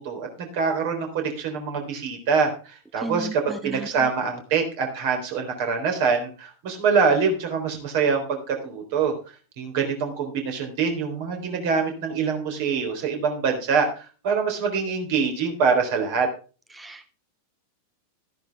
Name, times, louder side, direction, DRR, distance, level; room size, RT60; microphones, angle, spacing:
voice 1, 0.0-9.1 9.6-16.3, right 5 dB, 50° right, 4 dB, 3.7 m, -24 dB
voice 2, 3.0-3.9 16.7-17.1, right 2 dB, 10° right, 12 dB, 0.6 m, -34 dB
13.5 x 10.5 x 3.5 m, 0.36 s
figure-of-eight pair, 90°, 0 cm